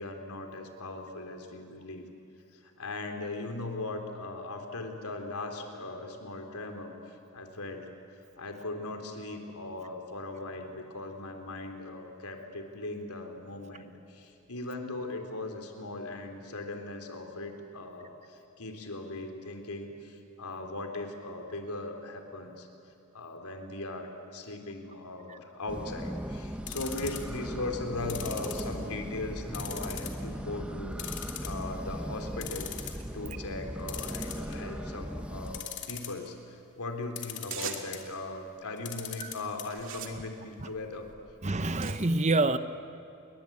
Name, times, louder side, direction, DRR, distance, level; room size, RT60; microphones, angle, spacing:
voice 1, 0.0-2.1 2.5-7.9 8.4-22.7 23.1-41.1, left 2 dB, 90° left, 4 dB, 3.5 m, -39 dB
sound 1, 25.7-35.6, equal, 5° right, 1.0 m, -38 dB
sound 2, 26.7-27.4 28.1-29.1 29.5-30.2 30.6-30.7 31.0-31.8 32.1-32.2 32.4-33.0 33.9-34.8 35.5-36.3 37.2-38.0 38.8-39.6 39.9-40.0 40.3-40.4, left 11 dB, 50° left, 2.9 m, -39 dB
sound 3, 37.5-38.1 38.9-39.2 39.7-41.9, right 8 dB, 60° right, 2.5 m, -42 dB
voice 2, 41.4-42.6, right 2 dB, 30° right, 12 dB, 0.9 m, -26 dB
29.5 x 22.5 x 8.6 m, 2.9 s
head